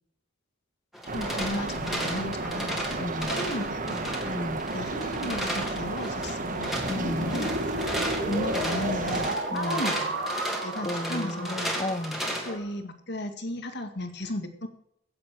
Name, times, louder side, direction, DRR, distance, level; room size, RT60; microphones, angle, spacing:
sound 1, 0.9-12.6, equal, ahead, 2.8 m, -35 dB
voice 1, 1.1-4.1 4.7-6.9 7.2-7.6 8.3-10.2 10.6-11.8 12.4-14.7, left 1 dB, 55° left, 7 dB, 2.0 m, -35 dB
sound 2, 1.1-9.4, right 3 dB, 40° right, 1.3 m, -33 dB
voice 2, 3.0-3.3 4.2-4.6 6.9-7.4 9.5-9.8 10.8-12.2, left 1 dB, 25° left, 12 dB, 0.9 m, -33 dB
sound 3, 6.7-12.7, right 1 dB, 60° right, 3.0 m, -33 dB
16.0 x 7.8 x 6.3 m, 0.72 s
head